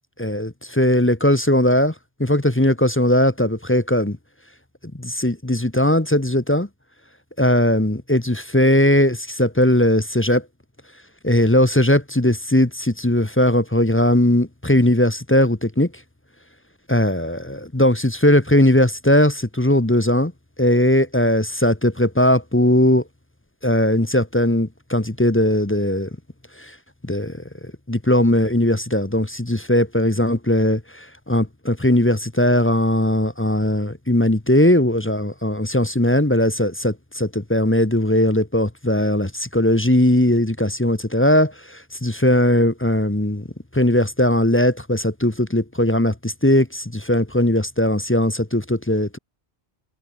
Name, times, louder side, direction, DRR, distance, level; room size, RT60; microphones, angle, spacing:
voice 1, 0.2-1.9 2.2-4.2 4.9-6.7 7.4-10.4 11.2-15.9 16.9-20.3 20.6-23.0 23.6-26.1 26.6-26.7 27.0-27.4 27.9-43.4 43.7-49.2, left 1 dB, 10° left, 1.1 m, -19 dB
omnidirectional pair, 1.1 m